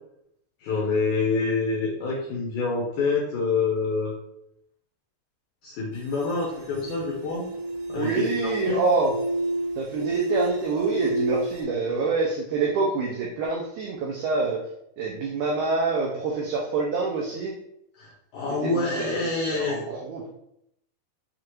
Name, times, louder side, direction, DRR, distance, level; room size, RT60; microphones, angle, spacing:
voice 1, 0.6-4.1 5.6-7.4 7.9-8.3 8.7-8.8 18.0-19.8, left 4 dB, 80° left, -3 dB, 1.8 m, -26 dB
sound 1, 5.9-11.6, right 1 dB, 65° right, 2.7 m, -30 dB
voice 2, 8.0-9.2 9.8-14.6 15.0-17.5 18.6-20.4, right 4 dB, 85° right, -2 dB, 1.7 m, -26 dB
6.5 x 2.4 x 2.9 m, 0.77 s
omnidirectional pair, 4.2 m